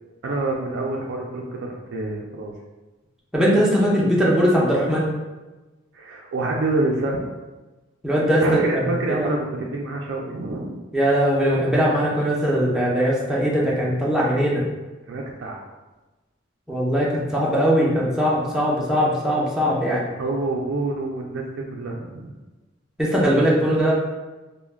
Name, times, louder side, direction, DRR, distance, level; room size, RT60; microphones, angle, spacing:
voice 1, 0.2-2.5 5.9-7.2 8.4-10.8 15.1-15.6 20.2-22.3, right 2 dB, 65° right, -1 dB, 0.3 m, -27 dB
voice 2, 3.3-5.1 8.0-9.3 10.9-14.6 16.7-20.0 23.0-23.9, equal, 5° right, -6 dB, 0.4 m, -20 dB
2.2 x 2.1 x 3.3 m, 1.1 s
head